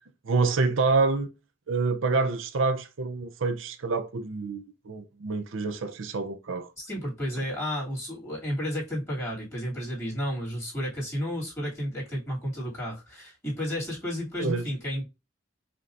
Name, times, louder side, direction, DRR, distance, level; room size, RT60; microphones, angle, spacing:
voice 1, 0.2-1.3 1.7-6.7 14.4-14.6, right 3 dB, 80° right, 0.6 m, -27 dB
voice 2, 6.8-15.0, equal, 15° left, 2.7 m, -32 dB
5.3 x 2.9 x 2.5 m
head